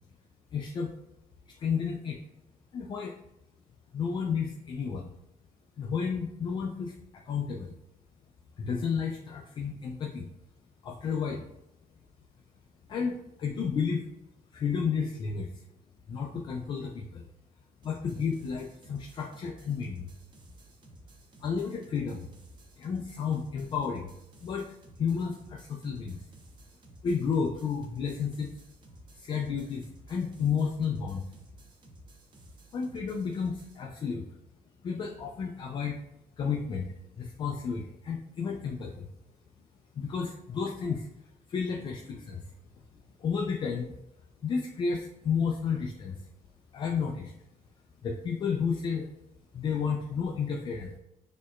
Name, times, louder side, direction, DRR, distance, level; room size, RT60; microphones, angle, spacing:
voice 1, 0.5-0.9 1.6-2.2 2.7-3.1 3.9-5.1 5.8-7.7 8.6-10.3 10.8-11.5 12.9-14.0 14.5-15.5 16.1-17.2 17.8-20.1 21.4-22.3 22.8-24.1 24.4-26.2 27.0-28.5 29.2-31.3 32.7-34.3 34.8-36.0 36.4-36.9 37.2-39.1 40.0-41.1 41.5-42.4 43.2-43.9 44.4-46.2 46.7-47.3 48.0-49.1 49.5-51.0, left 6 dB, 35° left, 1 dB, 0.4 m, -32 dB
sound 1, 17.8-33.8, right 1 dB, 35° right, 0.7 m, -54 dB
6.3 x 2.8 x 2.4 m, 0.87 s
cardioid pair, 160°, 13 cm